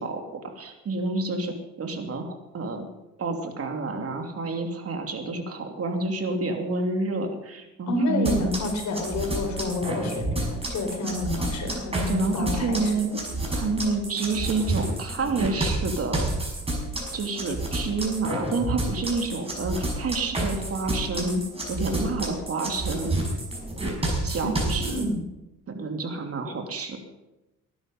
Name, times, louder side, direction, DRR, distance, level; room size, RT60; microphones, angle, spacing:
voice 1, 0.0-2.9 3.2-8.5 12.1-13.2 13.5-16.5 17.1-21.4 21.7-23.2 24.2-25.0 25.7-27.0, right 3 dB, 50° right, 4 dB, 3.0 m, -29 dB
voice 2, 7.9-12.9 24.4-25.2, left 2 dB, 65° left, 4 dB, 4.3 m, -29 dB
sound 1, 8.2-25.0, right 1 dB, 20° right, 6.1 m, -29 dB
19.0 x 11.0 x 5.4 m, 1.0 s
cardioid pair, 90°, 30 cm